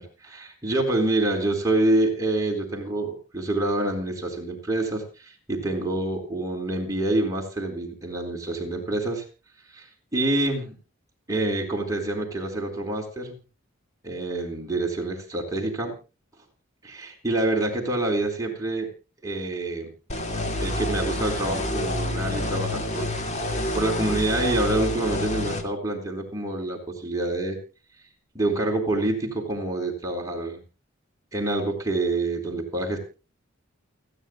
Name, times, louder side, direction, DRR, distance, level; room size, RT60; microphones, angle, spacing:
voice 1, 0.2-9.2 9.7-10.8 11.3-13.4 14.0-15.9 16.8-18.9 19.2-19.9 20.6-23.1 23.4-27.6 28.3-30.6 31.3-33.0, right 2 dB, 15° right, 0 dB, 4.0 m, -27 dB
sound 1, 20.1-25.6, left 1 dB, 35° left, 2.1 m, -28 dB
29.0 x 9.9 x 2.3 m, 0.32 s
head